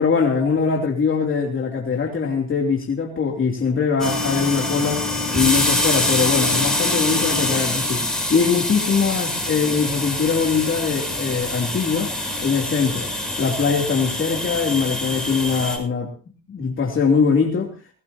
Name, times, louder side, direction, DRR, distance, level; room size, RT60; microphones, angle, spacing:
voice 1, 0.0-5.0 5.3-12.1 12.4-13.1 13.4-16.1 16.5-17.7, left 5 dB, 40° left, 0 dB, 3.0 m, -22 dB
sound 1, 4.0-15.8, left 1 dB, ahead, 7.1 m, -24 dB
20.0 x 17.5 x 2.8 m, 0.35 s
cardioid pair, 90°, 30 cm